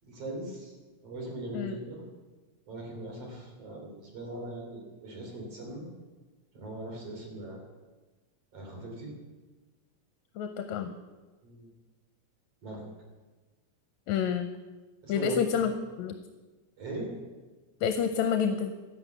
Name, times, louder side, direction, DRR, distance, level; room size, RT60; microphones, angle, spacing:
voice 1, 0.0-0.7 1.0-2.0 2.7-5.9 6.5-7.6 8.5-9.1 11.4-11.7 12.6-12.8 15.0-15.7 16.8-17.1, right 1 dB, 55° right, 0 dB, 4.1 m, -39 dB
voice 2, 10.4-10.9 14.1-14.5 15.1-15.7 16.0-16.2 17.8-18.7, left 7 dB, 80° left, 6 dB, 2.1 m, -28 dB
12.0 x 11.5 x 8.1 m, 1.3 s
omnidirectional pair, 3.3 m